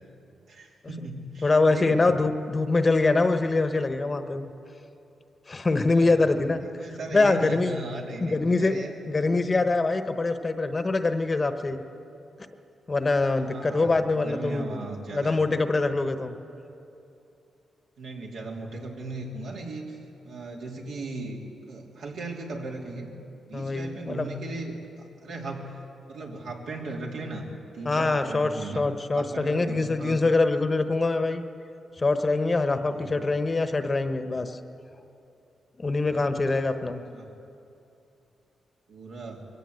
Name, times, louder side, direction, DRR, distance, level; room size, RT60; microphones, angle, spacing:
voice 1, 0.5-2.1 5.9-8.9 9.3-9.6 13.4-15.4 18.0-20.0 20.2-21.4 21.7-23.1 23.4-25.7 26.1-27.5 27.7-28.9 29.1-30.2 32.9-33.3 36.0-36.5 37.1-37.3 38.9-39.5, right 2 dB, 75° right, -1 dB, 3.0 m, -37 dB
voice 2, 1.4-4.5 5.5-6.6 7.1-7.8 8.2-8.8 9.1-11.8 12.9-14.8 15.1-16.3 23.5-24.3 27.8-31.4 32.0-34.6 35.8-37.0, left 3 dB, 30° left, 8 dB, 1.1 m, -24 dB
22.0 x 17.0 x 8.0 m, 2.8 s
cardioid pair, 90°, 0 cm